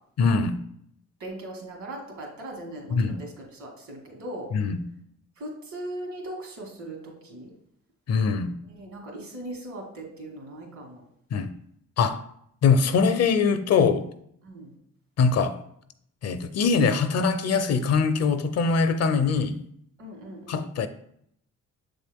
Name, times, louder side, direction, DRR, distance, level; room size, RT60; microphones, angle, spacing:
voice 1, 0.2-0.6 2.9-3.2 4.5-4.8 8.1-8.6 11.3-11.5 12.0-12.3 12.6-14.1 15.2-15.6 16.2-19.6 20.5-20.9, left 5 dB, 60° left, 0.6 m, -22 dB
voice 2, 1.2-4.5 5.4-7.5 8.7-11.0 14.4-14.7 20.0-20.7, right 1 dB, 70° right, 2.3 m, -39 dB
7.2 x 3.7 x 3.5 m
cardioid pair, 90°, 30 cm